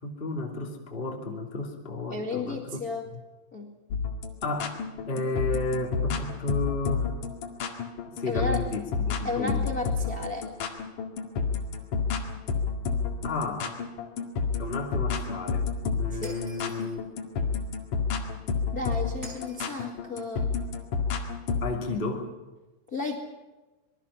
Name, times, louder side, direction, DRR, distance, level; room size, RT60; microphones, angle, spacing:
voice 1, 0.0-2.8 3.1-3.2 4.4-4.8 5.1-7.1 8.2-9.7 13.2-13.7 14.6-15.7 16.0-17.0 21.6-22.3, left 3 dB, 15° left, 0 dB, 1.9 m, -32 dB
voice 2, 2.1-3.1 3.5-3.7 8.2-8.7 9.2-10.5 16.2-16.3 18.7-20.5 22.9-23.2, left 3 dB, 70° left, 2 dB, 0.8 m, -33 dB
sound 1, 3.9-21.6, left 5 dB, 50° left, 3.1 m, -29 dB
Shatter, 16.2-17.0 19.2-19.9, right 1 dB, 20° right, 5.3 m, -47 dB
26.0 x 22.0 x 5.7 m, 1.2 s
omnidirectional pair, 5.5 m